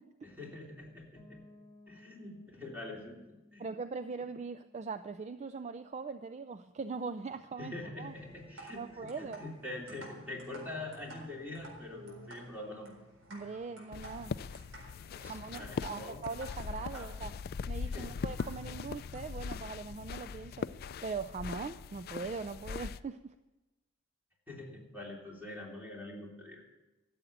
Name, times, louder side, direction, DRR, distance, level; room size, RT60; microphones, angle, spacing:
voice 1, 0.2-1.4 1.9-3.3 3.5-3.6 7.6-12.9 15.2-16.2 16.9-17.1 17.8-18.1 24.5-26.6, left 2 dB, 10° right, -2 dB, 3.2 m, -44 dB
Piano, 1.2-6.9, left 2 dB, 20° left, 2.2 m, -61 dB
voice 2, 3.6-8.1 8.7-9.4 13.3-14.4 15.2-17.3 17.7-20.7 21.0-23.3, right 4 dB, 35° right, 10 dB, 0.4 m, -41 dB
sound 1, 8.0-19.2, right 1 dB, 80° right, 4.3 m, -54 dB
sound 2, 13.9-23.0, left 5 dB, 50° left, 0.3 m, -40 dB
14.0 x 7.9 x 8.7 m, 1.1 s
head